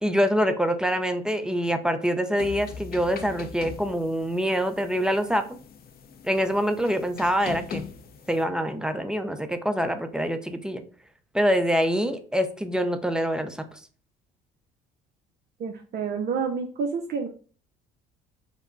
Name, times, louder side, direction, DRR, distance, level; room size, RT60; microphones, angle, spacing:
voice 1, 0.0-5.4 6.2-7.8 8.3-10.8 11.3-13.8, equal, 5° right, 8 dB, 0.6 m, -25 dB
sound 1, 2.4-8.4, left 6 dB, 45° left, 0.7 m, -41 dB
voice 2, 15.6-17.3, right 5 dB, 50° right, 2 dB, 0.7 m, -29 dB
5.1 x 2.1 x 3.9 m, 0.41 s
supercardioid pair, 70°, 21 cm